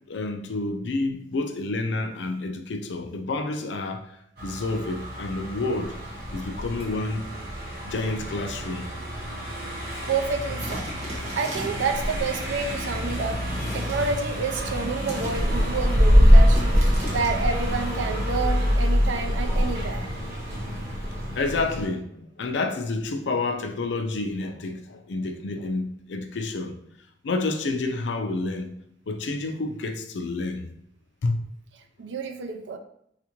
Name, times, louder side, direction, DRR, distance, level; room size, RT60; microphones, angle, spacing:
voice 1, 0.1-4.1 4.4-6.0 6.3-7.3 7.8-8.9 21.3-26.8 27.2-28.7 29.1-30.6 31.2-31.4, left 3 dB, 75° left, 0.4 m, -29 dB
Car passing by, 4.4-21.9, equal, 60° right, 0.9 m, -24 dB
voice 2, 10.1-10.9 11.3-13.4 13.7-16.8 17.1-20.1 32.0-32.8, right 4 dB, 80° right, 0.4 m, -29 dB
sound 1, 10.6-11.9 13.5-14.2 14.8-15.7 16.5-17.3, equal, 35° right, 1.1 m, -36 dB
sound 2, 11.3-12.4 13.5-14.5 15.4-16.4 17.5-18.4 19.4-20.3, equal, 5° left, 1.1 m, -46 dB
4.2 x 2.4 x 2.9 m
head